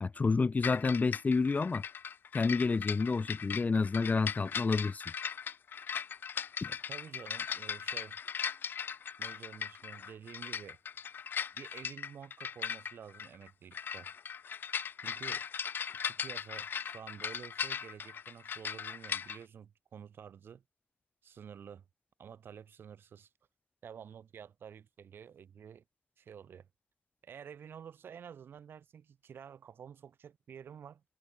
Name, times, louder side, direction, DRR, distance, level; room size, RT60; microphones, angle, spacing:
voice 1, 0.0-1.8 2.3-5.0 6.6-6.7, left 4 dB, 45° left, 1.0 m, -29 dB
sound 1, 0.6-19.4, left 7 dB, 70° left, 0.3 m, -39 dB
voice 2, 6.7-8.2 9.2-10.8 11.5-14.1 15.0-15.4 15.9-20.6 21.2-21.8 22.2-23.3 23.8-25.8 26.2-26.7 27.2-31.0, right 8 dB, 80° right, 8.0 m, -50 dB
cardioid pair, 55°, 4 cm